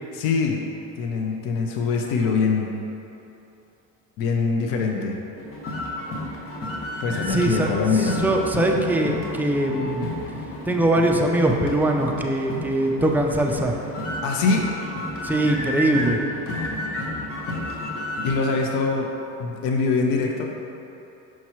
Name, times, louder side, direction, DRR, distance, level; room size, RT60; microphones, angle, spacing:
voice 1, 0.1-0.6 1.0-2.7 4.2-5.2 7.0-8.2 14.2-14.7 18.2-19.1 19.4-20.5, left 4 dB, 70° left, 1 dB, 0.8 m, -23 dB
sound 1, 5.4-18.3, left 1 dB, 40° left, 1.1 m, -31 dB
voice 2, 7.3-10.1 10.6-13.8 15.2-16.2, right 1 dB, 5° right, 0 dB, 0.4 m, -22 dB
6.0 x 5.7 x 3.0 m, 2.9 s
supercardioid pair, 110°, 36 cm